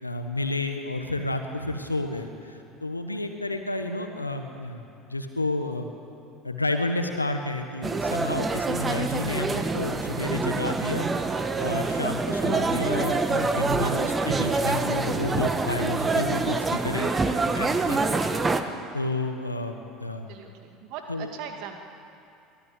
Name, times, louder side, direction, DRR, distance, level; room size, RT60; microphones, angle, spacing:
voice 1, 0.0-4.8 5.1-5.9 6.4-18.2 18.9-20.3 21.1-21.3, left 2 dB, 90° left, 5 dB, 1.3 m, -31 dB
sound 1, 7.8-18.6, right 3 dB, 20° right, 1.6 m, -26 dB
voice 2, 20.3-21.9, right 7 dB, 55° right, 4 dB, 2.3 m, -41 dB
23.5 x 17.0 x 8.5 m, 2.7 s
figure-of-eight pair, 70°, 0 cm